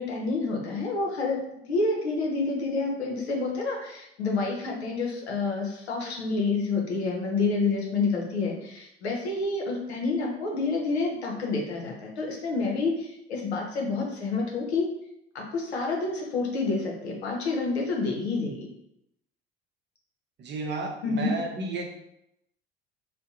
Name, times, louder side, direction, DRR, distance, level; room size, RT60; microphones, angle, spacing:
voice 1, 0.0-14.9 15.3-18.7 21.0-21.3, left 3 dB, 85° left, 0 dB, 0.7 m, -28 dB
voice 2, 20.4-21.9, right 3 dB, 35° right, 2 dB, 0.7 m, -32 dB
2.6 x 2.2 x 3.7 m, 0.79 s
hypercardioid pair, 65°, 32 cm